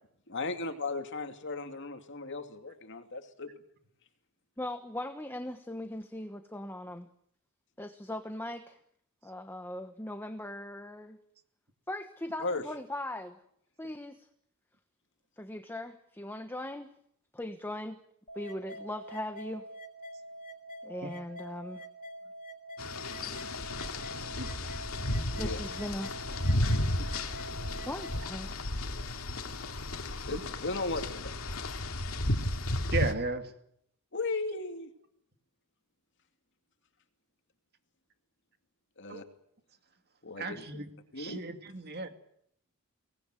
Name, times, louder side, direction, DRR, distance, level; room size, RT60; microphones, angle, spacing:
voice 1, 0.3-3.5 12.4-12.6 24.0-24.1 25.3-25.6 30.3-31.4 34.1-34.9 39.0-39.2 40.2-40.6 41.1-41.4, left 3 dB, 55° left, 6 dB, 2.6 m, -36 dB
voice 2, 4.6-7.1 7.8-8.8 9.2-11.2 11.9-13.4 13.8-14.3 15.4-16.9 17.3-18.0 18.3-19.6 20.8-21.8 25.4-26.1 27.8-28.6, left 1 dB, 10° left, 7 dB, 1.2 m, -39 dB
sound 1, 18.3-28.3, right 1 dB, 40° left, 3.7 m, -46 dB
sound 2, 22.8-33.1, left 1 dB, 75° left, 2.5 m, -33 dB
voice 3, 32.9-33.5 39.1-39.2 40.3-40.9 41.2-42.1, right 3 dB, 50° right, 7 dB, 2.4 m, -35 dB
24.0 x 19.0 x 9.2 m, 0.71 s
head